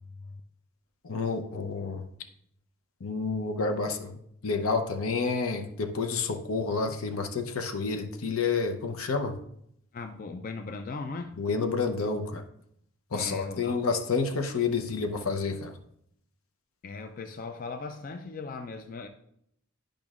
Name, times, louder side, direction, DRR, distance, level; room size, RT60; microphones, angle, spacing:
voice 1, 1.0-2.1 3.0-4.2 4.4-9.4 11.4-12.4 13.1-15.7, left 4 dB, 75° left, 6 dB, 0.7 m, -29 dB
voice 2, 9.9-11.3 13.1-13.9 16.8-19.1, left 4 dB, 40° left, 7 dB, 0.3 m, -38 dB
10.5 x 5.2 x 2.4 m, 0.74 s
head